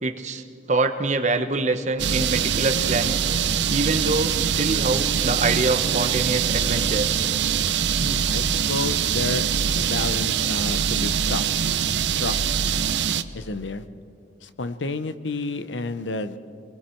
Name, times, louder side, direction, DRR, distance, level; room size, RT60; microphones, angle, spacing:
voice 1, 0.0-3.2 3.7-7.2, right 3 dB, 40° right, 7 dB, 1.1 m, -25 dB
sound 1, 2.0-13.2, right 8 dB, 75° right, 0.7 m, -23 dB
voice 2, 8.0-9.5 9.8-11.4 12.1-12.4 13.3-13.8 14.4-16.4, left 3 dB, 85° left, 12 dB, 0.9 m, -30 dB
27.0 x 21.5 x 4.6 m, 2.5 s
head